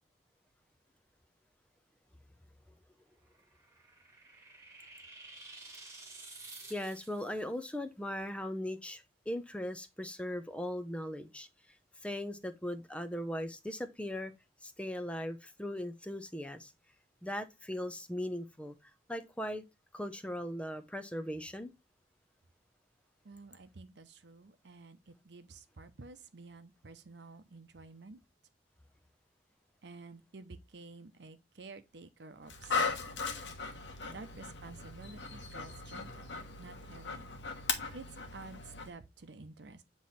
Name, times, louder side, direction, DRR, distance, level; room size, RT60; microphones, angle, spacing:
sound 1, 3.3-7.4, right 3 dB, 20° right, 1.7 m, -51 dB
voice 1, 6.7-11.5 12.0-14.3 14.6-16.7 17.2-18.7 19.1-19.6 19.9-21.7, left 1 dB, 5° left, 0.5 m, -39 dB
voice 2, 23.2-28.2 29.8-33.1 34.1-36.3 36.6-37.3 37.9-39.8, right 3 dB, 70° right, 0.7 m, -51 dB
Dog, 32.5-38.9, left 4 dB, 85° left, 1.1 m, -38 dB
7.6 x 3.1 x 4.1 m
head